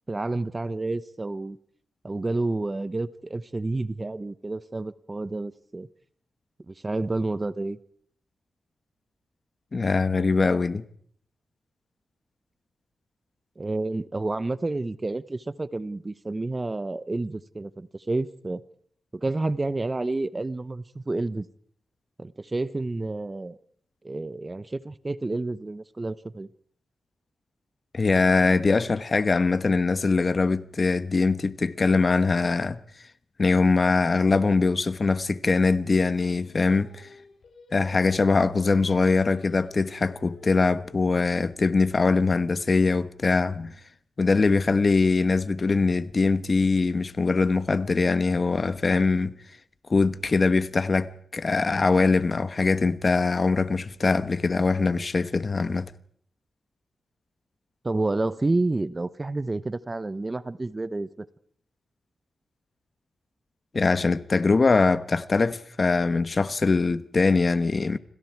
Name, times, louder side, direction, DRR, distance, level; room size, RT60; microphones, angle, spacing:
voice 1, 0.1-1.6 2.0-5.9 6.7-7.8 13.6-18.6 19.1-21.5 22.2-23.6 24.0-26.5 57.8-61.3, right 2 dB, 25° right, 0.9 m, -29 dB
voice 2, 9.7-10.8 27.9-32.8 33.4-37.1 37.7-43.7 44.2-49.3 49.9-55.9 63.7-68.0, left 4 dB, 40° left, 1.1 m, -22 dB
Singing, 36.2-41.4, left 4 dB, 60° left, 4.8 m, -50 dB
28.0 x 25.5 x 4.7 m
cardioid pair, 80°, 0 cm